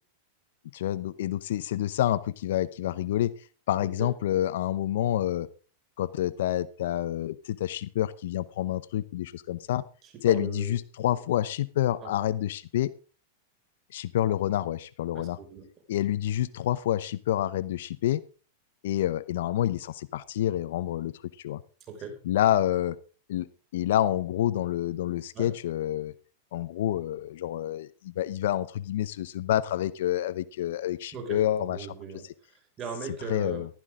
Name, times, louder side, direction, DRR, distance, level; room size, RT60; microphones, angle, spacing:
voice 1, 0.7-3.3 3.7-5.5 6.0-9.8 10.2-12.9 13.9-15.4 15.9-18.2 18.8-21.6 22.3-23.0 23.3-23.5 23.7-26.1 26.5-31.8 33.3-33.7, left 12 dB, 70° left, 18 dB, 0.7 m, -28 dB
voice 2, 3.8-4.1 10.0-10.7 12.0-12.1 15.1-15.7 21.9-22.2 25.3-25.5 31.1-31.4 31.7-33.7, right 5 dB, 35° right, 4 dB, 5.6 m, -39 dB
15.0 x 14.5 x 3.7 m, 0.36 s
hypercardioid pair, 125°, 0 cm